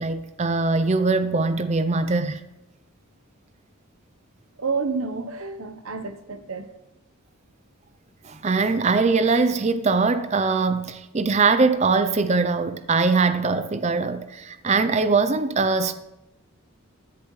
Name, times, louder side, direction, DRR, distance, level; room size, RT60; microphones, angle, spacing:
voice 1, 0.0-2.4 8.2-15.9, right 4 dB, 30° right, 0.5 m, -22 dB
voice 2, 4.6-6.7, right 4 dB, 70° right, 0.9 m, -29 dB
15.0 x 10.5 x 3.2 m
head